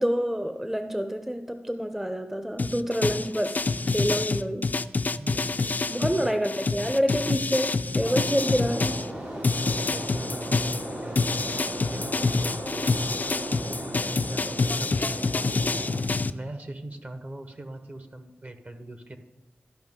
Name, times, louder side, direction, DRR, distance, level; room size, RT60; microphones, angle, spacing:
voice 1, 0.0-4.7 5.9-9.0, equal, 5° right, 8 dB, 0.6 m, -27 dB
sound 1, 2.6-9.1 9.4-16.3, left 3 dB, 45° left, 0.4 m, -27 dB
voice 2, 5.2-6.4 9.5-13.1 13.7-19.2, right 2 dB, 45° right, 7 dB, 1.1 m, -42 dB
sound 2, 8.0-16.0, right 1 dB, 80° right, 3.0 m, -36 dB
13.0 x 5.4 x 3.7 m, 1.1 s
cardioid pair, 45°, 4 cm